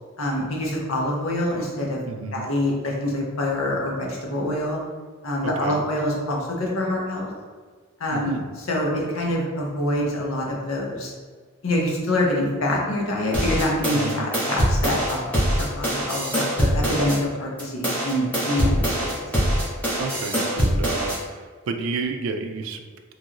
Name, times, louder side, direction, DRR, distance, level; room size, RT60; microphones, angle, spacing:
voice 1, 0.2-2.0 2.3-4.8 5.2-7.3 8.0-8.3 8.7-11.1 11.6-19.2, left 1 dB, 85° left, -2 dB, 0.7 m, -25 dB
voice 2, 2.0-2.5 5.4-5.8 8.1-8.5 13.9-14.3 20.0-22.9, right 4 dB, 80° right, 6 dB, 0.3 m, -31 dB
sound 1, 13.3-17.2 17.6-21.2, equal, 5° left, 0.7 m, -23 dB
3.0 x 2.9 x 2.4 m, 1.5 s
head